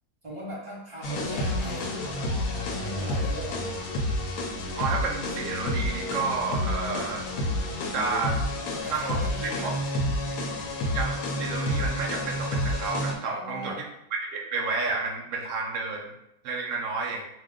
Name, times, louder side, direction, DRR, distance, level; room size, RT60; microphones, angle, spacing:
voice 1, 0.2-2.2 2.6-3.7 8.6-9.8 13.2-13.8, equal, 20° right, -8 dB, 1.0 m, -39 dB
sound 1, 1.0-13.1, left 1 dB, 70° left, 0.9 m, -29 dB
voice 2, 4.8-7.3 7.9-8.4 8.9-9.7 10.9-13.8 14.1-16.1 16.4-17.3, right 4 dB, 70° right, 1 dB, 0.7 m, -31 dB
2.7 x 2.2 x 3.5 m, 0.81 s
omnidirectional pair, 1.7 m